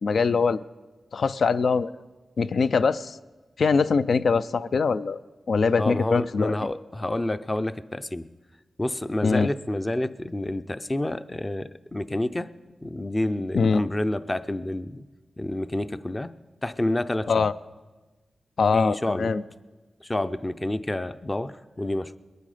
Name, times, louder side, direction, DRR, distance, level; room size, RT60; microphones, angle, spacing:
voice 1, 0.0-0.6 1.1-1.9 2.4-3.2 3.6-5.2 5.5-6.5 9.2-9.5 13.5-13.8 17.3-17.5 18.6-19.4, left 5 dB, 70° left, 14 dB, 0.4 m, -22 dB
voice 2, 5.8-8.2 8.8-12.5 12.8-15.1 15.4-16.3 16.6-17.5 18.7-19.3 20.0-22.2, left 1 dB, 20° left, 13 dB, 0.5 m, -28 dB
21.5 x 9.3 x 5.0 m, 1.2 s
wide cardioid pair, 80°, 0 cm